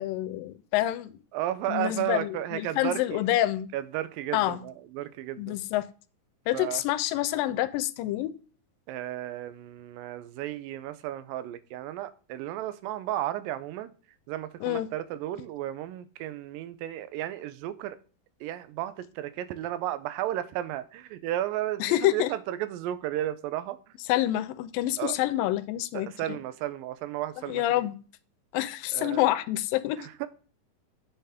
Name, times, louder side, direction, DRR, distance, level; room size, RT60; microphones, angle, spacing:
voice 1, 0.0-1.2 1.7-3.7 4.3-4.6 5.4-5.9 6.5-8.3 14.6-14.9 21.8-22.3 24.1-26.4 27.5-27.9 28.5-30.0, left 14 dB, 85° left, 2.3 m, -27 dB
voice 2, 1.3-3.2 3.7-5.6 6.5-6.8 8.9-13.9 14.3-18.0 18.4-23.8 25.0-25.2 26.0-27.9 28.9-29.3 30.0-30.3, right 13 dB, 85° right, 2.4 m, -33 dB
9.2 x 6.7 x 3.5 m
omnidirectional pair, 4.0 m